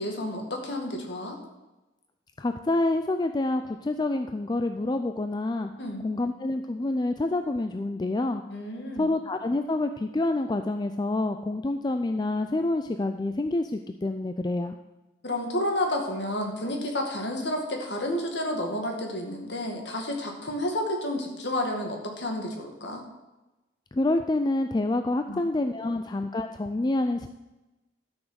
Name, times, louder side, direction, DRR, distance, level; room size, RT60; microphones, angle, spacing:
voice 1, 0.0-1.4 5.8-6.1 8.5-9.1 15.2-23.0 25.3-25.5, left 1 dB, 55° left, 2 dB, 2.0 m, -30 dB
voice 2, 2.4-5.7 6.0-8.4 9.0-14.8 23.9-27.3, left 2 dB, 20° left, 7 dB, 0.3 m, -27 dB
12.0 x 6.3 x 6.3 m, 1.0 s
head